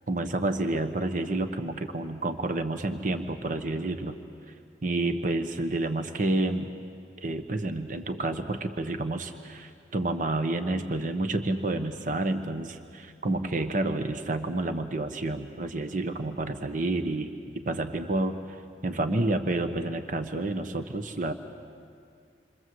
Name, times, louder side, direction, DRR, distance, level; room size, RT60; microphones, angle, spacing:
voice 1, 0.1-4.2 4.8-6.7 7.2-18.4 18.8-21.3, right 2 dB, 45° right, 8 dB, 1.1 m, -29 dB
28.0 x 24.5 x 7.8 m, 2.2 s
head